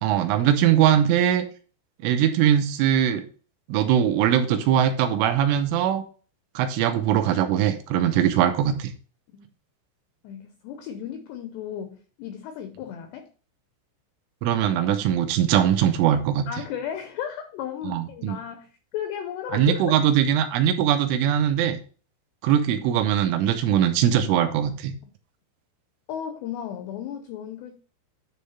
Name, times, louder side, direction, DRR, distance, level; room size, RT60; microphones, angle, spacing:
voice 1, 0.0-1.4 2.0-3.2 3.7-6.0 6.6-8.9 14.4-16.5 17.8-18.4 19.5-21.8 22.4-24.9, right 10 dB, 80° right, 3.2 m, -21 dB
voice 2, 10.2-13.3 16.5-20.0 26.1-27.8, left 9 dB, 85° left, 2.4 m, -34 dB
10.5 x 3.5 x 5.6 m
omnidirectional pair, 5.7 m